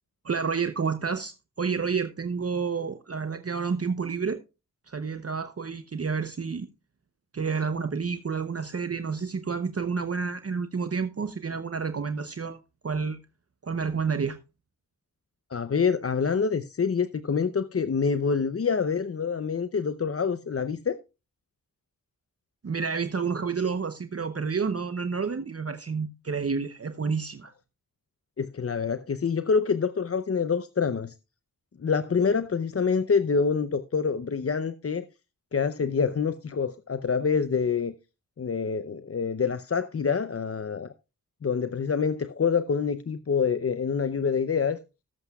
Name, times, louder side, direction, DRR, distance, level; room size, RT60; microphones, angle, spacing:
voice 1, 0.2-4.4 4.9-6.7 7.3-12.6 12.8-13.2 13.6-14.4 22.6-27.5, right 5 dB, 40° right, 0.9 m, -29 dB
voice 2, 15.5-21.0 28.4-31.1 31.8-35.1 35.5-37.9 38.4-40.9 41.4-44.8, left 5 dB, 40° left, 0.7 m, -26 dB
18.5 x 7.9 x 2.3 m
cardioid pair, 55°, 36 cm